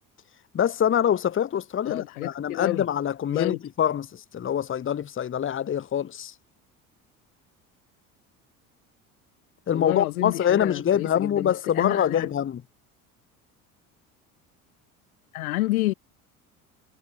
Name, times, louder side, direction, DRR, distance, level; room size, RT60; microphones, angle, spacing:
voice 1, 0.5-6.3 9.7-12.6, left 9 dB, 30° left, 1.1 m, -25 dB
voice 2, 1.9-2.8 3.3-3.6 9.7-12.3 15.3-15.9, left 18 dB, 80° left, 1.1 m, -29 dB
hypercardioid pair, 65°, 42 cm